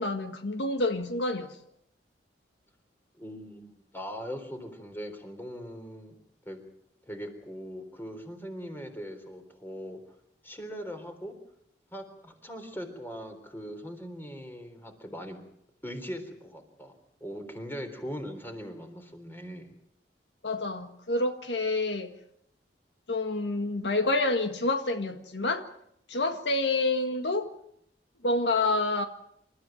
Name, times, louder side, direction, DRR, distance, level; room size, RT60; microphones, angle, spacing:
voice 1, 0.0-1.5 20.4-22.1 23.1-25.7 26.1-27.5 28.2-29.0, left 2 dB, 75° left, 1.7 m, -28 dB
voice 2, 3.1-6.1 6.4-6.6 7.0-10.2 10.4-11.4 11.9-15.4 15.8-19.7, equal, 10° left, 3.7 m, -40 dB
28.5 x 14.0 x 9.2 m
head